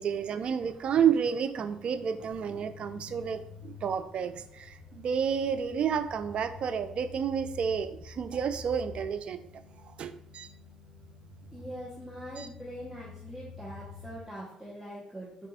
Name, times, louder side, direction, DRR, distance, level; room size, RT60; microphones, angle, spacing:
voice 1, 0.0-9.5 10.0-10.5 12.4-12.5, right 7 dB, 55° right, 11 dB, 0.4 m, -30 dB
sound 1, 1.6-14.3, left 5 dB, 60° left, 1.1 m, -49 dB
voice 2, 11.5-15.5, right 1 dB, 10° right, -6 dB, 1.1 m, -43 dB
4.0 x 2.6 x 4.0 m, 0.73 s
supercardioid pair, 70°, 2 cm